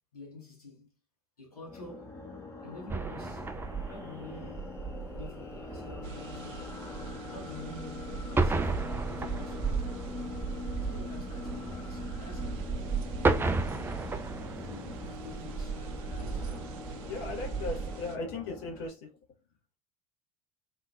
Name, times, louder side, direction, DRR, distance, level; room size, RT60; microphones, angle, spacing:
voice 1, 0.1-0.9 1.4-2.2 2.6-3.5 3.9-4.8 5.1-6.8 7.3-10.1 10.7-14.0 14.6-15.8 16.1-16.5, left 2 dB, 90° left, 1.3 m, -49 dB
sound 1, 1.6-18.9, left 4 dB, 15° left, 0.9 m, -43 dB
sound 2, 2.9-18.0, right 4 dB, 10° right, 0.3 m, -34 dB
sound 3, 6.0-18.2, right 5 dB, 60° right, 0.5 m, -47 dB
voice 2, 17.1-19.1, left 3 dB, 60° left, 1.5 m, -37 dB
2.8 x 2.6 x 2.3 m
hypercardioid pair, 75°, 19 cm